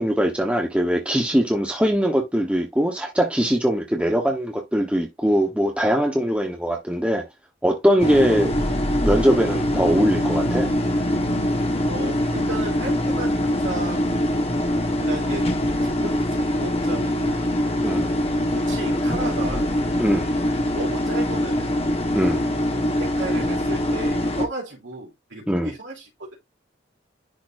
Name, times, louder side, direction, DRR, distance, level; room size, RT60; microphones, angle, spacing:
voice 1, 0.0-7.2 7.6-8.5 9.0-10.7 17.8-18.1 20.0-20.3 22.1-22.4 25.5-25.7, equal, 5° right, 1.1 m, -21 dB
sound 1, 8.0-24.5, left 1 dB, 30° left, 1.4 m, -23 dB
voice 2, 11.9-14.1 15.0-15.5 15.8-17.5 18.5-19.7 20.7-21.8 23.0-26.1, right 2 dB, 75° right, 3.1 m, -34 dB
10.5 x 4.1 x 2.6 m
head